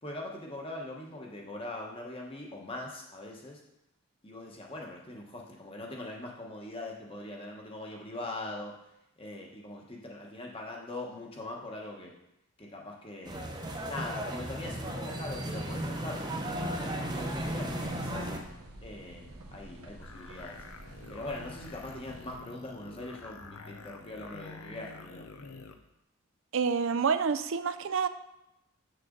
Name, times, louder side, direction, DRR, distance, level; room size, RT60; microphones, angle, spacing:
voice 1, 0.0-3.6 4.2-8.8 9.2-12.1 12.6-18.3 18.8-20.6 21.1-25.3, left 2 dB, 25° left, -1 dB, 1.2 m, -42 dB
sound 1, 13.3-18.4, right 1 dB, 20° right, 0.8 m, -35 dB
sound 2, 17.1-22.4, right 1 dB, 90° right, 1.2 m, -49 dB
sound 3, 20.0-25.8, left 3 dB, 75° left, 0.7 m, -48 dB
voice 2, 26.5-28.1, right 6 dB, 60° right, 11 dB, 0.4 m, -28 dB
7.6 x 6.7 x 3.9 m, 0.85 s
head